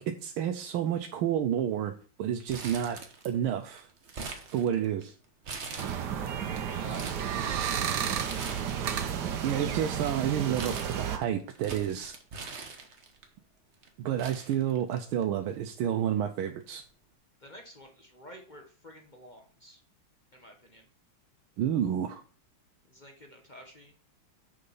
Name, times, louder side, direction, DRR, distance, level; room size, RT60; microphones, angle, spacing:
voice 1, 0.0-1.9 2.2-3.0 3.2-3.9 4.5-5.1 9.4-12.2 14.0-16.8 21.6-22.2, right 10 dB, 85° right, 6 dB, 1.5 m, -30 dB
Crumpling crinkling, 2.5-3.5 3.8-5.0 5.4-6.3 6.7-7.3 8.1-8.9 9.2-13.2 13.8-13.9 14.2-15.2 15.5-15.6 16.6-16.9, right 4 dB, 40° right, 1.1 m, -42 dB
sound 1, 5.8-11.2, right 8 dB, 60° right, 1.4 m, -32 dB
voice 2, 5.9-7.5 17.4-19.8 20.3-20.9 22.9-23.9, left 1 dB, 30° left, 3 dB, 0.9 m, -51 dB
6.7 x 6.4 x 5.5 m, 0.42 s
omnidirectional pair, 2.3 m